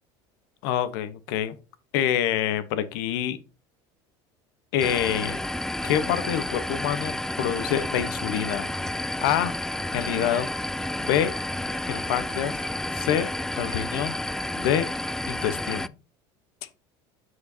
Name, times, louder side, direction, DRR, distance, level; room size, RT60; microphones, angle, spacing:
voice 1, 0.6-1.5 1.9-3.4 4.7-5.4 5.8-8.7 9.2-9.5 9.9-10.5 11.0-11.3 11.9-12.5 12.9-13.3 13.6-14.2 14.5-14.9 15.3-15.9, left 10 dB, 80° left, 1.1 m, -26 dB
sound 1, 4.8-15.9, left 1 dB, 5° left, 0.3 m, -31 dB
7.7 x 6.3 x 2.8 m
supercardioid pair, 105°, 12 cm